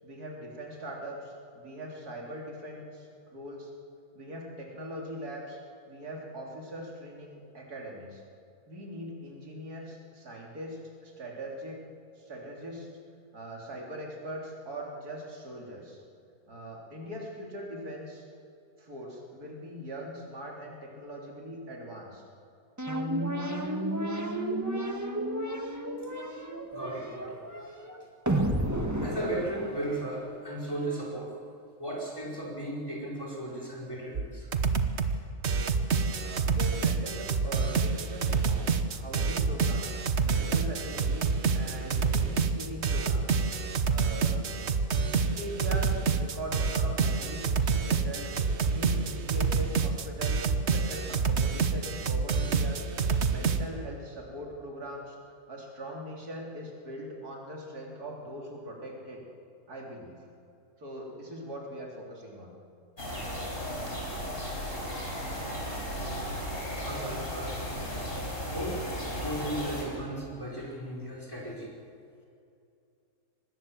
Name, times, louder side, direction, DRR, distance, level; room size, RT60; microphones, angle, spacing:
voice 1, 0.0-3.7 4.1-8.2 8.7-11.8 12.2-12.9 13.3-16.0 16.5-18.3 18.8-22.2 36.2-39.9 40.2-43.4 43.9-44.5 45.2-48.3 48.6-55.2 55.5-59.2 59.7-60.2 60.8-62.5, equal, 80° right, -1 dB, 3.9 m, -41 dB
sound 1, 22.8-30.3, right 1 dB, 10° right, 1.6 m, -32 dB
voice 2, 26.7-27.7 29.0-31.4 31.8-34.5 66.8-71.7, right 1 dB, 15° left, -2 dB, 4.6 m, -36 dB
sound 2, 34.2-34.3 34.5-35.2 35.4-53.6, right 5 dB, 50° right, 1.2 m, -27 dB
sound 3, 63.0-69.8, equal, 35° left, 4.8 m, -35 dB
24.5 x 19.5 x 7.5 m, 2.6 s
omnidirectional pair, 1.6 m